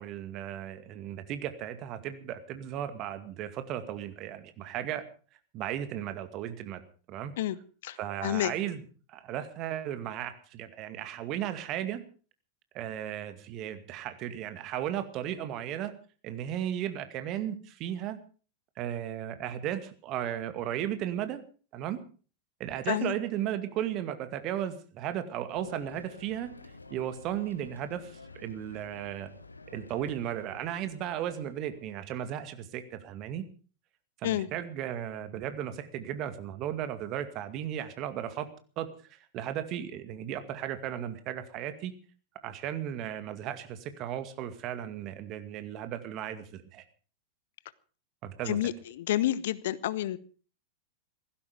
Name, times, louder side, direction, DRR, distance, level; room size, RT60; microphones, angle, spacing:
voice 1, 0.0-5.1 5.5-6.8 7.1-7.3 8.0-8.8 9.1-12.0 12.7-15.9 16.2-18.2 18.8-21.4 21.7-22.0 22.6-26.6 26.9-29.3 29.7-33.5 34.2-38.5 38.8-41.9 42.4-46.8 48.2-48.6, right 11 dB, 40° right, 2.1 m, -35 dB
voice 2, 7.8-8.5 22.9-23.1 34.2-34.5 48.5-50.2, left 13 dB, 55° left, 0.9 m, -29 dB
sound 1, 25.5-32.2, left 3 dB, 80° left, 1.3 m, -50 dB
17.0 x 15.5 x 5.1 m
figure-of-eight pair, 90°, 0 cm